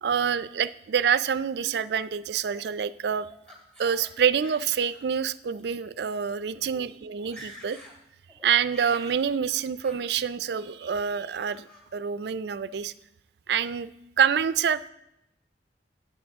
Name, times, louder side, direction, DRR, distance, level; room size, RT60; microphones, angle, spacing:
voice 1, 0.0-3.3 3.8-7.8 8.4-11.6 11.9-12.9 13.5-13.9 14.2-14.9, right 7 dB, 65° right, 15 dB, 0.4 m, -26 dB
Laughter, 2.5-4.1 4.4-5.1 5.4-5.6 6.3-6.4 6.6-6.9 7.2-8.0 8.3-9.2 9.8-10.0 10.5-10.9 11.4-11.8, equal, 5° left, 2.3 m, -49 dB
16.5 x 8.1 x 3.5 m, 0.84 s
head